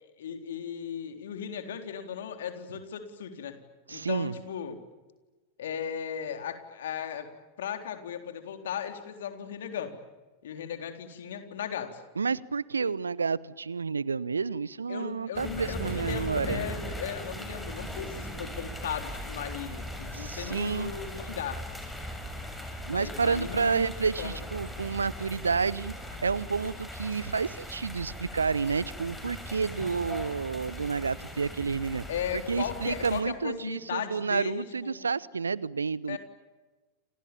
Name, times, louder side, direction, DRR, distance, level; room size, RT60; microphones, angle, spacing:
voice 1, 0.2-3.6 3.9-4.8 5.6-7.3 7.6-10.0 10.4-12.0 14.9-21.6 22.8-23.9 24.2-24.4 32.1-35.1 36.1-36.2, left 8 dB, 60° left, 7 dB, 3.9 m, -36 dB
voice 2, 3.9-4.3 12.2-16.6 20.1-20.9 22.9-25.9 26.2-32.0 32.3-36.2, right 5 dB, 75° right, 22 dB, 0.9 m, -30 dB
sound 1, 15.3-33.2, equal, 5° left, 7.2 m, -39 dB
29.0 x 28.0 x 7.3 m, 1.2 s
figure-of-eight pair, 90°, 0 cm